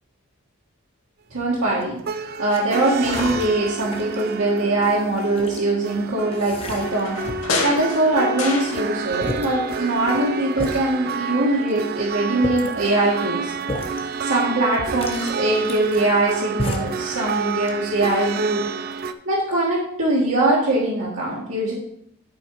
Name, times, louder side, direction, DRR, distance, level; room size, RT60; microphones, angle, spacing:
voice 1, 1.3-2.0 2.4-7.2 7.6-13.5 14.2-18.7 19.2-21.7, right 2 dB, 70° right, -5 dB, 1.6 m, -22 dB
sound 1, 1.6-2.0 2.5-2.6 3.0-4.3 4.8-5.6 6.3-7.6 7.9-8.5 8.9-9.0 9.2-9.5 10.1-10.2 10.6-10.8 11.7-11.8 12.2-12.8 13.6-14.0 14.4-14.5 14.8-16.3 16.6-17.0 17.5-18.1, left 1 dB, 25° left, 0.9 m, -31 dB
sound 2, 2.0-19.1, right 5 dB, 45° right, 0.4 m, -30 dB
sound 3, 6.8-9.3 9.5-10.6 10.9-11.0, left 3 dB, 70° left, 1.7 m, -29 dB
10.5 x 4.4 x 4.7 m, 0.73 s
head